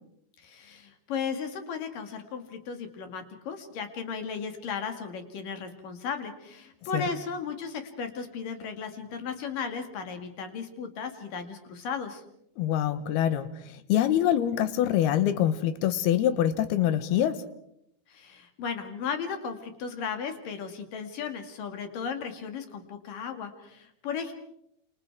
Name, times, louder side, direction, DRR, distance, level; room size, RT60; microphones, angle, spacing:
voice 1, 0.4-12.2 18.1-24.3, left 6 dB, 55° left, 7 dB, 3.3 m, -35 dB
voice 2, 12.6-13.5 13.9-17.4, left 11 dB, 70° left, 13 dB, 2.8 m, -24 dB
28.0 x 27.5 x 4.7 m, 0.75 s
omnidirectional pair, 5.2 m